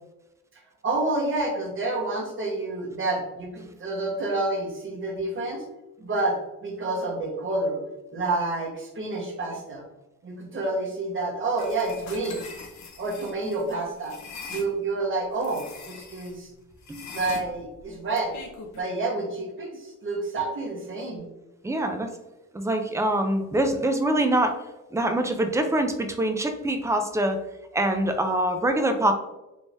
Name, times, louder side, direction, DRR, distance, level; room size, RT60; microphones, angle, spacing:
voice 1, 0.8-5.6 6.0-7.8 8.1-9.8 10.2-12.4 13.0-14.2 14.5-16.5 17.1-18.3 18.7-21.3, right 2 dB, 40° right, -2 dB, 1.1 m, -29 dB
sound 1, 11.6-14.7 15.4-16.3 16.8-18.8, left 4 dB, 65° left, 0.7 m, -42 dB
voice 2, 21.6-22.1 22.5-24.6 24.9-27.4 27.7-29.1, right 1 dB, 10° right, 6 dB, 0.4 m, -24 dB
3.6 x 3.2 x 2.6 m, 0.98 s
cardioid pair, 115°, 30 cm